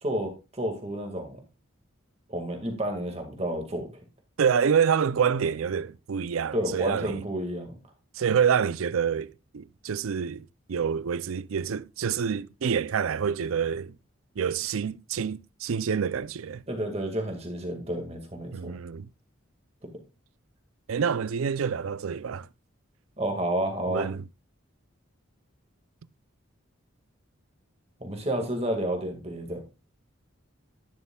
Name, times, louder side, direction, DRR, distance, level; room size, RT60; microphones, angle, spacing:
voice 1, 0.0-1.4 2.3-3.9 6.5-7.8 16.7-18.8 19.8-20.0 23.2-24.1 28.0-29.6, right 1 dB, 30° right, 1.9 m, -30 dB
voice 2, 4.4-7.2 8.2-13.9 14.4-16.6 18.5-19.1 20.9-22.5 23.9-24.2, right 7 dB, 85° right, 0.5 m, -27 dB
11.0 x 10.5 x 2.3 m
head